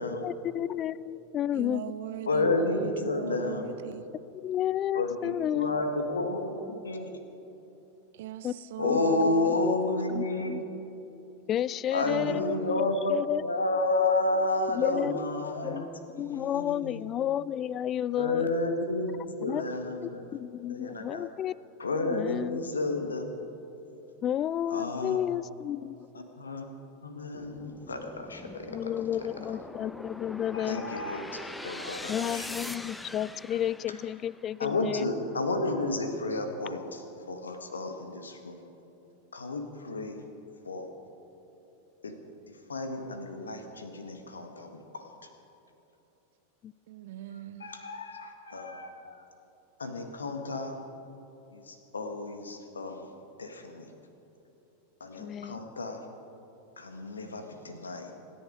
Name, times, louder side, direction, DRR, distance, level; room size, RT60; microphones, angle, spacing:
voice 1, 0.2-1.9 4.3-5.8 8.4-8.5 8.8-9.0 10.1-10.6 11.5-13.4 14.8-15.2 15.6-18.5 19.4-19.7 20.0-21.5 22.0-22.6 24.2-26.1 28.7-30.9 32.1-35.1 46.6-46.7 55.2-55.6, left 11 dB, 30° left, 21 dB, 0.3 m, -32 dB
voice 2, 1.5-4.1 8.1-9.8 12.0-12.8 46.9-47.7, right 12 dB, 55° right, 12 dB, 0.8 m, -40 dB
voice 3, 2.3-3.6 4.9-7.1 8.8-10.6 11.9-13.2 13.4-15.8 16.1-17.0 18.2-20.2 20.7-21.3 21.8-23.3 24.7-25.2 26.1-26.7 27.0-28.9 29.2-29.3 30.5-32.5 33.5-33.6 34.6-38.6 39.3-40.2 40.6-40.9 42.0-42.2 42.5-45.1 47.6-49.2 49.8-50.8 51.5-53.1 53.4-53.9 55.0-56.0 56.8-58.2, left 2 dB, 75° left, 6 dB, 1.5 m, -31 dB
sound 1, 27.3-34.6, left 1 dB, 5° left, 0.7 m, -43 dB
25.5 x 10.5 x 4.9 m, 2.9 s
figure-of-eight pair, 90°, 0 cm